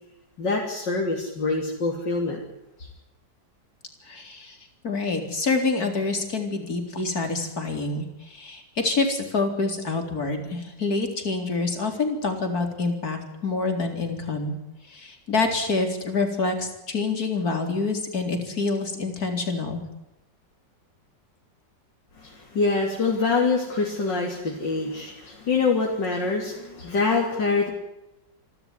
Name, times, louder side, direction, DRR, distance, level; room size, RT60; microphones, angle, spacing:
voice 1, 0.4-2.4 2.8-2.9 22.2-27.7, left 4 dB, 70° left, -1 dB, 3.8 m, -25 dB
voice 2, 4.1-4.6 4.8-14.5 14.9-19.8, left 3 dB, 50° left, 5 dB, 4.3 m, -27 dB
27.5 x 13.0 x 9.8 m, 0.94 s
omnidirectional pair, 2.0 m